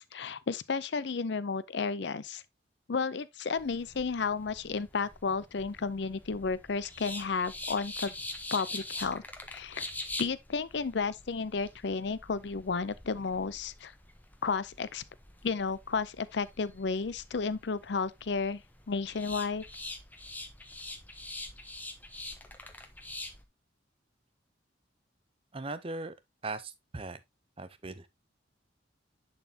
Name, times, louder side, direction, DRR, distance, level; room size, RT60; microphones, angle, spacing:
voice 1, 0.0-2.4 2.9-8.1 8.5-9.2 9.5-9.9 10.2-13.9 14.4-15.0 15.4-18.6 18.9-19.6, left 4 dB, 65° left, 0.5 m, -32 dB
sound 1, 3.6-23.4, left 2 dB, 10° left, 0.9 m, -44 dB
voice 2, 25.5-26.1 26.4-27.2 27.6-28.1, right 3 dB, 30° right, 0.6 m, -39 dB
10.5 x 4.2 x 2.8 m
head